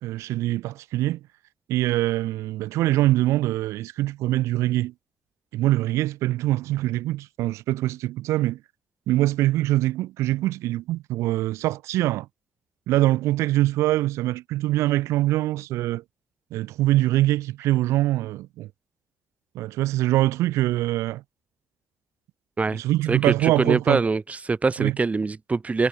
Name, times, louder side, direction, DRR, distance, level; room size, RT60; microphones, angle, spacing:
voice 1, 0.0-1.2 1.7-4.9 5.5-8.6 9.1-12.3 12.9-16.0 16.5-18.7 19.5-21.2 22.7-24.0 24.8-25.0, right 16 dB, 75° right, 3.2 m, -23 dB
voice 2, 23.1-25.9, right 4 dB, 30° right, 1.4 m, -24 dB
hypercardioid pair, 55°, 5 cm